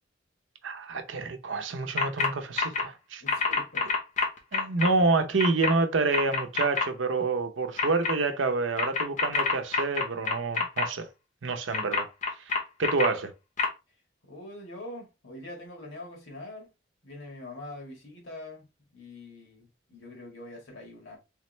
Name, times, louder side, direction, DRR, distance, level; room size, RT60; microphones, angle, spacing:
voice 1, 0.6-3.2 4.5-11.1 11.4-12.1 12.5-13.3, right 3 dB, 85° right, 0.7 m, -28 dB
sound 1, 2.0-2.3 2.6-2.8 3.3-4.9 5.4-5.7 6.1-6.8 7.8-8.1 8.8-10.8 11.7-13.1 13.6-13.7, left 4 dB, 40° left, 0.9 m, -26 dB
voice 2, 3.2-3.9 14.3-16.7 17.0-18.7 18.9-21.2, left 1 dB, 90° left, 1.7 m, -44 dB
3.5 x 3.1 x 3.2 m
head